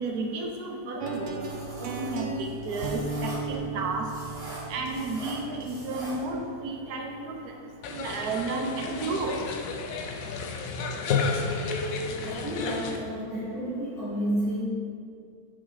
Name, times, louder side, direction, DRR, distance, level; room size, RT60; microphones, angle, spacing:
voice 1, 0.0-1.4 1.8-4.1 4.7-7.5 7.9-9.4, right 3 dB, 85° right, 2 dB, 1.3 m, -32 dB
sound 1, 1.0-7.0, right 3 dB, 65° right, 0.5 m, -36 dB
sound 2, 1.4-6.5, right 1 dB, 45° right, 1.6 m, -43 dB
sound 3, 7.8-13.0, left 4 dB, 70° left, 1.0 m, -31 dB
voice 2, 11.8-14.6, right 1 dB, 85° left, -8 dB, 2.4 m, -31 dB
5.8 x 5.0 x 4.2 m, 2.3 s
omnidirectional pair, 1.6 m